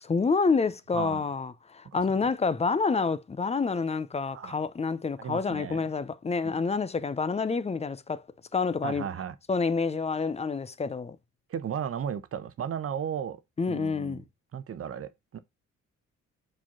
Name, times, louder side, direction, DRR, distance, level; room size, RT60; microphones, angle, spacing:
voice 1, 0.0-8.2 8.5-9.1 9.5-11.2 13.6-14.2, left 4 dB, 20° left, 0.6 m, -28 dB
voice 2, 5.2-5.8 6.4-6.5 8.8-9.3 11.5-13.4 13.7-14.2 14.5-15.4, right 8 dB, 50° right, 0.8 m, -35 dB
4.9 x 4.5 x 5.9 m
cardioid pair, 90°, 30 cm